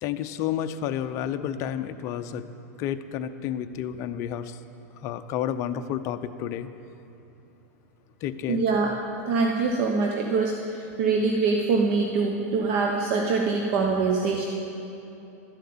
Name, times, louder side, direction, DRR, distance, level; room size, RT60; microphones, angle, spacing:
voice 1, 0.0-2.4 2.8-4.6 5.0-6.7 8.2-8.6, left 10 dB, 35° left, 9 dB, 0.6 m, -30 dB
voice 2, 8.5-9.0 9.3-14.4, right 4 dB, 50° right, 1 dB, 1.1 m, -24 dB
13.0 x 7.7 x 8.7 m, 3.0 s
supercardioid pair, 145°, 9 cm